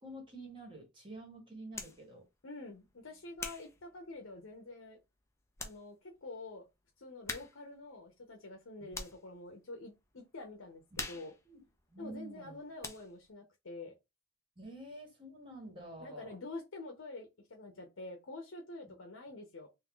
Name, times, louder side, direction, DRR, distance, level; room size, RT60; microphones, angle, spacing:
voice 1, 0.0-2.2 8.8-8.9 10.9-11.6 11.9-12.6 14.6-16.4, right 1 dB, 25° right, 1.5 m, -49 dB
sound 1, 1.7-2.0 2.7-4.7 5.2-5.3 5.5-5.9 6.1-6.2 7.2-7.7 8.0-9.3 9.8-10.1 10.4-12.5 12.8-13.3, left 3 dB, 15° left, 0.6 m, -45 dB
voice 2, 2.4-5.0 5.6-6.7 7.0-10.8 11.1-11.3 12.0-13.9 16.0-19.7, left 2 dB, 85° left, 0.8 m, -47 dB
3.6 x 2.7 x 3.7 m
head